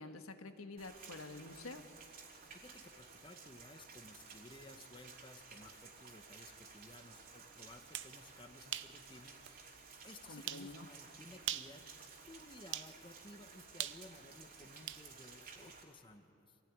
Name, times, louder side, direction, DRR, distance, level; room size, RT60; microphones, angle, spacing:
voice 1, 0.0-1.9 10.3-10.9, left 2 dB, 85° left, 7 dB, 1.6 m, -48 dB
Rain, 0.8-15.8, right 4 dB, 45° right, 3.1 m, -55 dB
voice 2, 2.5-16.6, left 2 dB, 25° left, 6 dB, 1.3 m, -57 dB
sound 1, 7.9-8.1 8.7-8.9 9.5-9.6 10.5-10.7 11.4-11.8 12.7-12.9 13.8-15.1, right 12 dB, 60° right, 0.7 m, -41 dB
26.5 x 16.0 x 9.7 m, 2.5 s
head